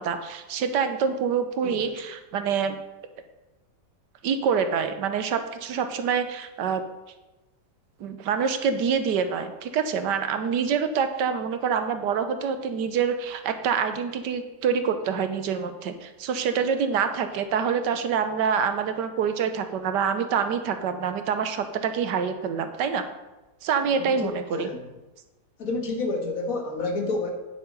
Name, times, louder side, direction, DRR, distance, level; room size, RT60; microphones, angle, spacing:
voice 1, 0.0-2.8 4.2-6.8 8.0-23.0 23.6-24.7, right 6 dB, 85° right, 8 dB, 1.5 m, -26 dB
voice 2, 1.6-1.9 23.8-24.8 25.6-27.3, left 3 dB, 55° left, 2 dB, 1.9 m, -30 dB
9.6 x 6.7 x 5.3 m, 1.1 s
omnidirectional pair, 1.8 m